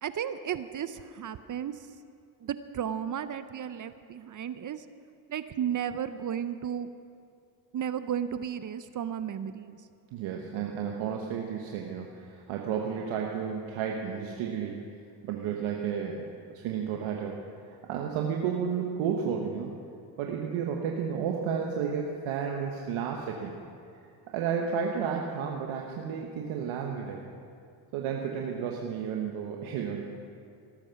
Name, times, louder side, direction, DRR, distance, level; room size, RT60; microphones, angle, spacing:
voice 1, 0.0-1.9 2.4-4.9 5.3-6.9 7.7-9.8, right 9 dB, 40° right, 12 dB, 0.6 m, -34 dB
voice 2, 10.1-14.9 15.2-16.3 16.5-17.4 17.7-19.8 20.2-23.5 24.3-27.2 27.9-30.0, right 7 dB, 70° right, 1 dB, 1.3 m, -32 dB
18.5 x 8.9 x 5.8 m, 2.4 s
supercardioid pair, 75°, 50 cm